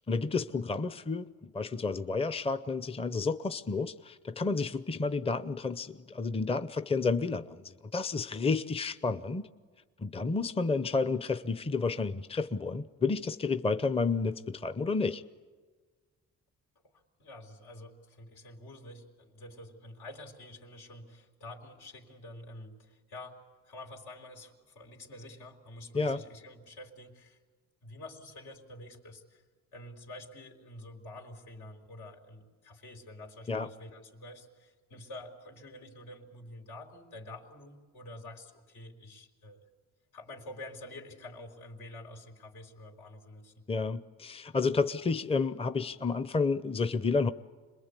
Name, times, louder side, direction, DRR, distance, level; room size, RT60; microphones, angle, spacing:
voice 1, 0.0-9.5 10.0-15.2 25.9-26.2 33.5-33.7 43.7-47.3, left 4 dB, 20° left, 0.7 m, -31 dB
voice 2, 16.8-27.4 27.8-29.4 29.7-39.6 40.1-43.6, left 1 dB, 85° left, 4.1 m, -48 dB
27.0 x 21.0 x 8.4 m
cardioid pair, 90°, 30 cm